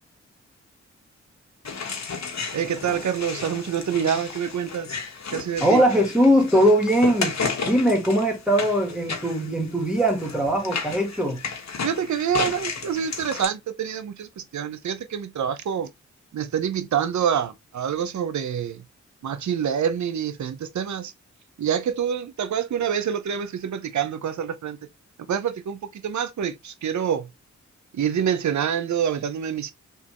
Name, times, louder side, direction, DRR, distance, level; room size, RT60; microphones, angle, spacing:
sound 1, 1.6-13.5, left 5 dB, 65° left, 1.3 m, -33 dB
voice 1, 2.5-5.0 5.3-5.8 11.8-15.9 16.3-18.8 19.2-21.1 21.6-24.8 25.2-27.3 27.9-29.7, right 8 dB, 75° right, 0.7 m, -26 dB
voice 2, 5.6-7.4 7.6-11.4, equal, 5° right, 2.3 m, -20 dB
4.5 x 3.5 x 3.0 m
cardioid pair, 55°, 29 cm